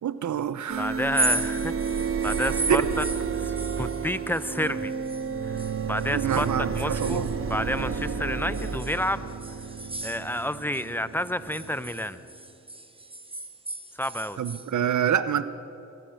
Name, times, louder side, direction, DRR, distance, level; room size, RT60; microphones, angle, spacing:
voice 1, 0.0-1.0 2.7-2.8 6.1-7.3 14.4-15.5, right 9 dB, 65° right, 14 dB, 0.8 m, -26 dB
sound 1, 0.7-12.3, right 6 dB, 45° right, 1.0 m, -31 dB
voice 2, 0.8-3.1 3.3-4.9 5.4-7.2 7.5-9.3 10.0-12.2 14.0-14.4, left 1 dB, 5° left, 14 dB, 0.7 m, -30 dB
sound 2, 1.0-5.3 5.6-8.1 8.5-10.9 11.2-14.7, right 2 dB, 15° right, 1.1 m, -35 dB
22.5 x 8.7 x 6.5 m, 2.7 s
supercardioid pair, 40°, 31 cm